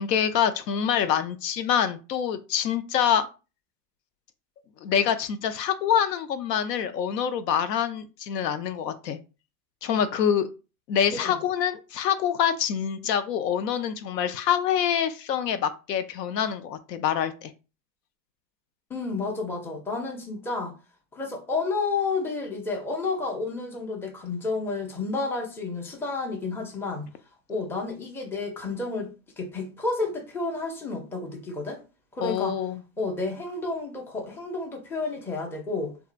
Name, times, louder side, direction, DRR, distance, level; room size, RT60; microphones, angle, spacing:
voice 1, 0.0-3.3 4.8-9.2 9.8-10.5 10.9-17.5 32.2-32.8, left 8 dB, 85° left, 0.6 m, -26 dB
voice 2, 18.9-20.7 21.1-27.1 27.5-31.8 32.1-32.6 33.0-35.9, left 3 dB, 5° left, 0.4 m, -31 dB
2.7 x 2.3 x 2.4 m
hypercardioid pair, 100°, 48 cm